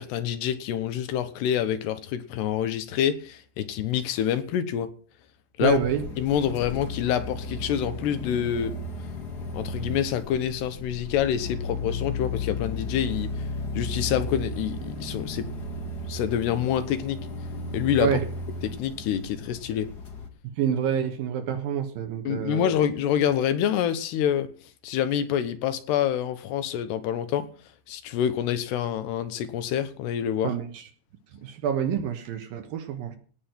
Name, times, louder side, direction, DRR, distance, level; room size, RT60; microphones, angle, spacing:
voice 1, 0.0-4.9 5.6-5.8 6.2-8.7 9.5-13.3 13.7-15.5 16.1-17.2 17.7-18.2 18.6-19.9 22.3-24.5 24.8-27.5 27.9-30.5, left 9 dB, 75° left, 12 dB, 3.1 m, -26 dB
sound 1, 5.6-20.3, left 2 dB, 40° left, 1.5 m, -34 dB
voice 2, 5.6-6.0 18.0-18.2 20.6-22.7 30.4-30.8 31.4-33.2, right 9 dB, 65° right, 8 dB, 2.6 m, -27 dB
18.0 x 6.3 x 7.8 m, 0.42 s
omnidirectional pair, 5.0 m